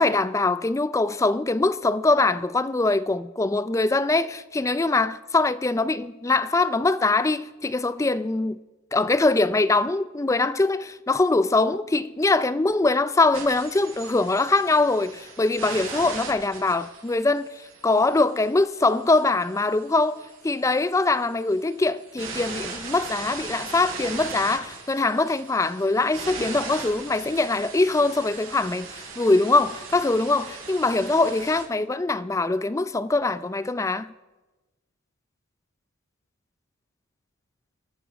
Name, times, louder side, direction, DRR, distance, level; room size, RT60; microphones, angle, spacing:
voice 1, 0.0-8.6 8.9-34.1, left 3 dB, 15° left, 0.3 m, -23 dB
sound 1, 13.3-31.6, right 4 dB, 65° right, 5.8 m, -39 dB
23.5 x 9.1 x 4.8 m
head